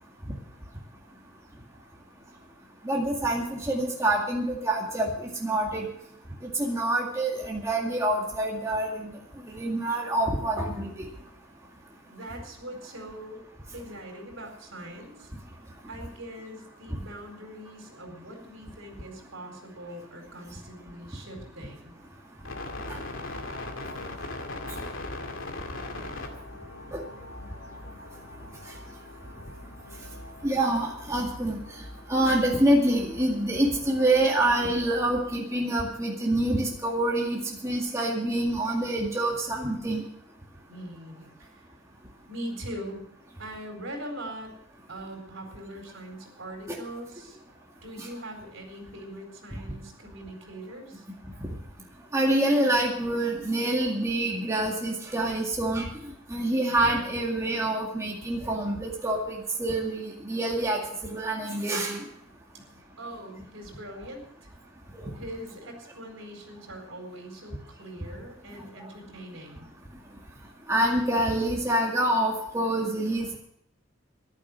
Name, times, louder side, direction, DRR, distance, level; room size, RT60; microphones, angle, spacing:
voice 1, 2.8-5.9 6.4-9.1 9.4-10.9 16.9-17.0 26.9-27.0 30.4-31.6 32.1-40.0 46.7-46.8 48.0-48.1 52.1-55.9 56.3-62.0 65.0-65.1 70.7-73.4, right 1 dB, 15° right, -2 dB, 2.0 m, -26 dB
voice 2, 12.1-13.4 13.7-15.3 15.9-22.0 40.7-41.7 42.3-43.0 43.4-44.5 44.9-47.4 47.8-51.0 63.0-64.5 65.2-69.7, right 1 dB, 70° right, 3 dB, 4.4 m, -41 dB
sound 1, 22.4-35.4, left 2 dB, 75° left, 2.1 m, -41 dB
14.0 x 11.5 x 6.3 m, 0.73 s
head